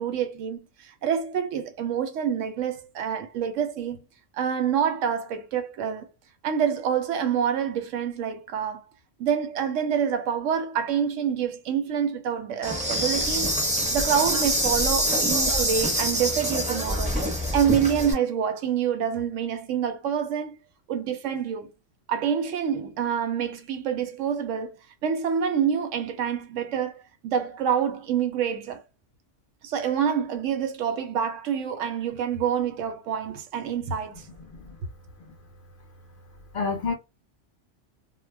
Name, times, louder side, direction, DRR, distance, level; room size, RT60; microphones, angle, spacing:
voice 1, 0.0-4.0 4.3-6.1 6.4-8.8 9.2-13.5 13.9-17.2 17.5-20.6 20.9-21.7 22.1-24.8 25.0-28.8 29.6-34.2, right 8 dB, 80° right, 0.9 m, -27 dB
Insect, 12.6-18.1, equal, 5° right, 0.6 m, -25 dB
voice 2, 34.4-34.8 36.5-36.9, left 4 dB, 60° left, 0.6 m, -29 dB
2.2 x 2.1 x 3.2 m
omnidirectional pair, 1.3 m